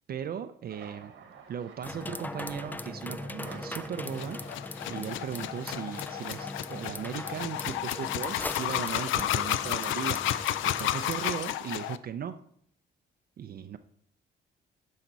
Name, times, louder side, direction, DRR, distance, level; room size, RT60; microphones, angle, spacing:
voice 1, 0.1-1.1 1.5-4.4 4.9-10.2 10.6-12.4 13.4-13.8, right 8 dB, 50° right, 8 dB, 0.5 m, -37 dB
sound 1, 0.7-9.4 9.8-10.6 10.9-11.8, right 6 dB, 75° right, 1.3 m, -52 dB
sound 2, 1.8-11.4, left 2 dB, 10° left, 0.3 m, -40 dB
sound 3, 4.1-12.0, left 12 dB, 80° left, 0.5 m, -32 dB
10.5 x 5.8 x 4.0 m, 0.65 s
cardioid pair, 90°, 20 cm